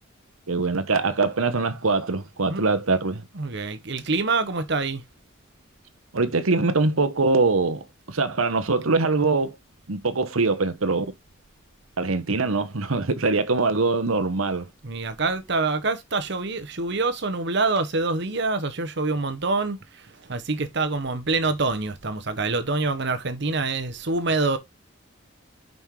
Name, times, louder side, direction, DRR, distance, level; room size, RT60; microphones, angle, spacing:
voice 1, 0.5-3.2 6.1-9.5 9.9-11.0 12.0-14.7, right 3 dB, 80° right, 1.1 m, -23 dB
voice 2, 3.3-5.0 14.8-24.6, right 3 dB, 55° right, 1.0 m, -26 dB
5.7 x 5.4 x 4.7 m
head